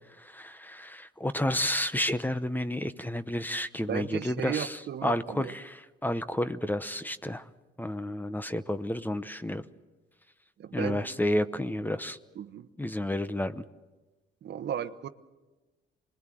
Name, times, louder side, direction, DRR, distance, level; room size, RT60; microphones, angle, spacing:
voice 1, 0.2-7.5 7.8-9.6 10.7-12.2 12.8-13.6, left 1 dB, 10° left, 12 dB, 0.9 m, -31 dB
voice 2, 3.9-5.5 10.6-11.1 12.3-12.7 14.4-15.1, right 9 dB, 60° right, 11 dB, 1.0 m, -35 dB
25.5 x 21.0 x 7.7 m, 1.2 s
cardioid pair, 90°, 20 cm